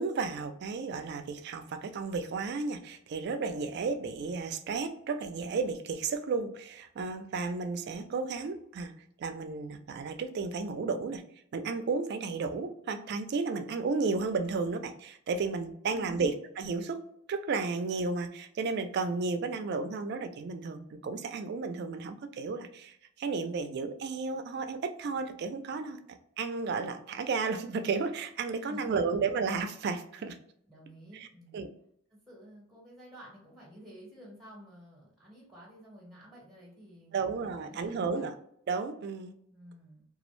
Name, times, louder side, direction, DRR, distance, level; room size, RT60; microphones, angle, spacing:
voice 1, 0.0-8.9 9.2-11.2 11.5-17.0 17.3-30.4 31.1-31.3 31.5-31.7 37.1-38.3 38.7-39.3, right 4 dB, 50° right, 8 dB, 0.3 m, -33 dB
voice 2, 15.9-16.4 28.6-29.2 30.7-31.7 32.1-38.3 39.5-40.0, equal, ahead, -5 dB, 1.0 m, -51 dB
2.3 x 2.0 x 3.0 m, 0.69 s
head